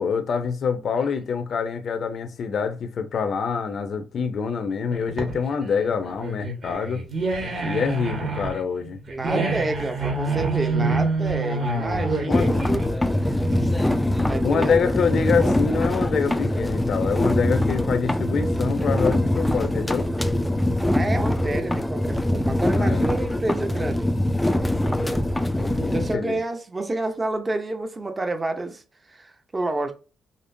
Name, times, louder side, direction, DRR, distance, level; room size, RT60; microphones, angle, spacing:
voice 1, 0.0-7.0 7.6-9.0 12.3-12.5 14.4-20.1 22.8-23.1 25.6-26.4, left 6 dB, 55° left, 0.6 m, -26 dB
sound 1, 4.9-13.9, right 3 dB, 45° right, 1.4 m, -27 dB
voice 2, 9.1-12.8 14.3-14.8 20.8-24.1 24.8-25.3 25.6-29.9, right 2 dB, 25° right, 0.6 m, -29 dB
sound 2, 12.3-26.2, left 1 dB, 10° left, 0.3 m, -23 dB
5.1 x 2.0 x 2.6 m
cardioid pair, 90°, 0 cm